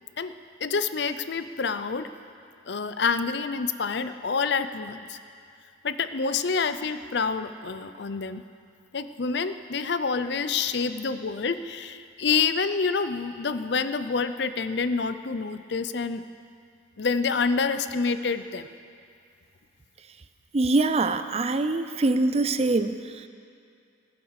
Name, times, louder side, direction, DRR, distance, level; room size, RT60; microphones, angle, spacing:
voice 1, 0.6-2.1 2.7-5.2 5.8-8.4 8.9-16.2 17.0-18.7, left 5 dB, 60° left, 11 dB, 0.6 m, -27 dB
voice 2, 20.5-23.3, right 2 dB, 35° right, 11 dB, 0.5 m, -24 dB
17.0 x 9.7 x 6.5 m, 2.4 s
head